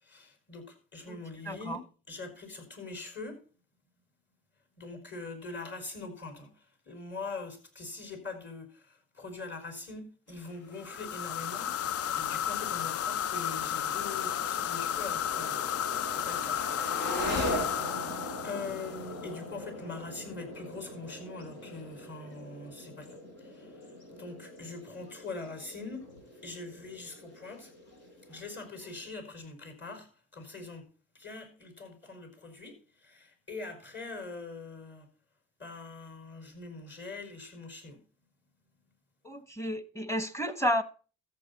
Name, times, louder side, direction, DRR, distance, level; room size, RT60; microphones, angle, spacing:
voice 1, 0.0-3.4 4.8-15.6 16.1-16.7 18.4-23.7 24.1-26.1 26.4-27.7 28.3-30.9 31.1-35.1 35.6-38.0, left 3 dB, 35° left, 5.1 m, -43 dB
voice 2, 1.4-1.8 39.2-40.8, equal, 10° left, 1.3 m, -31 dB
sound 1, 10.3-29.1, left 1 dB, 75° left, 5.2 m, -41 dB
sound 2, 10.8-19.3, left 10 dB, 55° left, 0.4 m, -33 dB
14.0 x 7.8 x 4.1 m
cardioid pair, 90°, 30 cm